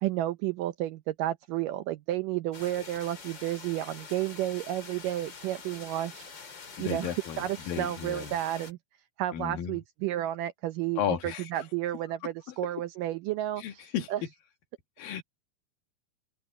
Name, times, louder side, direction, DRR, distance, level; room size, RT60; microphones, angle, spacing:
voice 1, 0.0-6.2 6.8-7.1 7.4-8.8 9.2-13.6 14.1-14.2, right 13 dB, 80° right, 2.0 m, -31 dB
sound 1, 2.5-8.7, left 5 dB, 35° left, 2.6 m, -46 dB
voice 2, 6.8-8.3 9.3-9.8 11.0-11.6 13.6-14.3 15.0-15.2, left 9 dB, 70° left, 3.1 m, -34 dB
open air
omnidirectional pair, 4.4 m